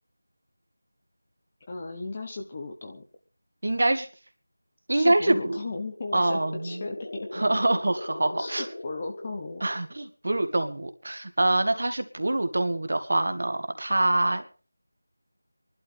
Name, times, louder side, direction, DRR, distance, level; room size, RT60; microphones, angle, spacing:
voice 1, 1.7-3.0 4.9-7.3 8.4-9.7, left 3 dB, 15° left, 3 dB, 1.0 m, -36 dB
voice 2, 3.6-4.1 4.9-5.6 6.1-6.8 7.3-8.7 9.6-14.4, right 2 dB, 50° right, 8 dB, 1.8 m, -25 dB
sound 1, 5.8-10.0, left 1 dB, 55° left, 5.4 m, -40 dB
25.0 x 12.0 x 3.5 m, 0.36 s
figure-of-eight pair, 180°, 0 cm